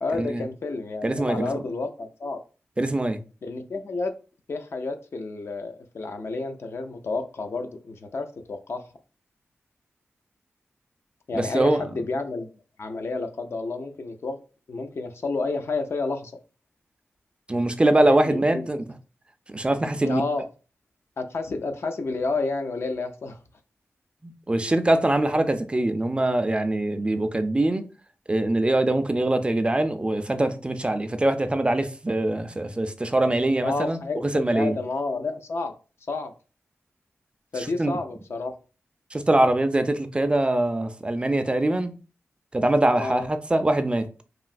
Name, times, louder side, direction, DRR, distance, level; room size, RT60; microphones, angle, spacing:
voice 1, 0.0-2.4 3.4-4.1 4.5-8.8 11.3-12.5 12.8-14.4 14.7-16.3 18.1-18.7 20.0-20.4 21.2-23.4 33.6-35.7 36.1-36.3 37.5-38.5 43.0-43.3, left 3 dB, 60° left, 0.4 m, -30 dB
voice 2, 1.0-1.6 2.8-3.2 11.3-11.8 17.5-18.8 19.5-20.2 24.2-27.8 28.3-34.0 34.3-34.8 37.6-38.0 39.1-41.9 42.5-44.1, right 1 dB, 20° right, 0.3 m, -23 dB
3.0 x 2.6 x 2.4 m
wide cardioid pair, 85°, 5 cm